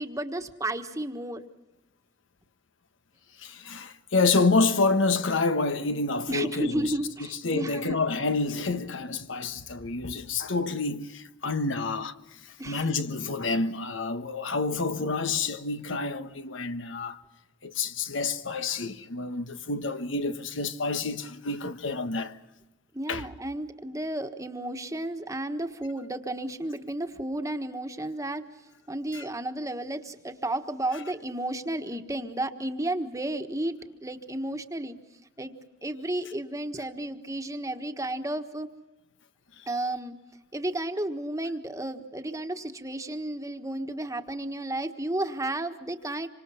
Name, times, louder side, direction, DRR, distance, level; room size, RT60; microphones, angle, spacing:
voice 1, 0.0-1.4 6.3-8.0 12.6-12.9 18.4-19.3 22.9-28.4 28.9-34.9 35.4-35.6 35.8-38.7 39.7-40.1 40.5-46.3, right 1 dB, 15° right, 1.4 m, -33 dB
voice 2, 3.4-6.9 7.4-17.2 17.6-22.4 23.1-23.3 29.1-29.2, left 3 dB, 85° left, 1.3 m, -28 dB
27.0 x 25.5 x 5.7 m
head